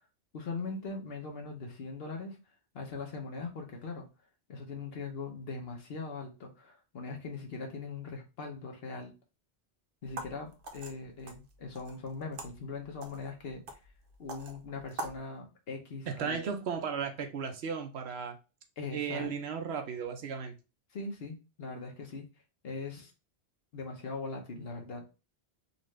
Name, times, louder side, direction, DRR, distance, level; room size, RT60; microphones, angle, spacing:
voice 1, 0.3-2.4 2.7-4.1 4.5-9.1 10.0-13.8 14.2-16.4 18.8-19.3 20.9-22.2 22.6-23.1 23.7-25.0, left 4 dB, 65° left, 1.1 m, -40 dB
sound 1, 10.0-15.2, right 2 dB, 60° right, 0.8 m, -45 dB
voice 2, 16.1-18.4 18.9-20.6, right 6 dB, 85° right, 1.0 m, -35 dB
4.0 x 2.5 x 3.1 m
omnidirectional pair, 1.1 m